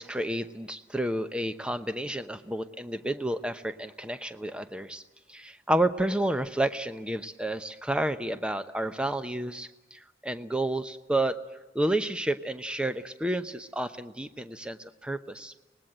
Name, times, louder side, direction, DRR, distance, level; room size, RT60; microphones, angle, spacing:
voice 1, 0.0-5.0 5.3-11.4 11.7-15.5, right 1 dB, 5° right, 10 dB, 0.8 m, -30 dB
24.5 x 20.0 x 8.9 m, 1.1 s
head